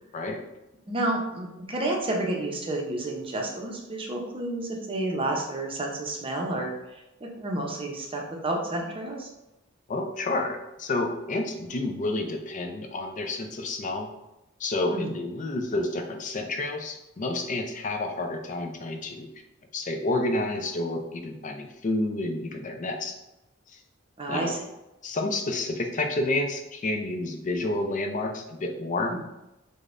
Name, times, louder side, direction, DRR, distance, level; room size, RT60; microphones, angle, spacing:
voice 1, 0.9-9.3 14.9-15.1 24.2-24.6 29.1-29.2, right 1 dB, 25° right, 0 dB, 0.6 m, -30 dB
voice 2, 9.9-14.1 14.6-19.3 19.7-23.1 24.3-24.6 25.0-29.1, left 2 dB, 40° left, 4 dB, 0.4 m, -29 dB
5.1 x 2.1 x 2.5 m, 0.95 s
head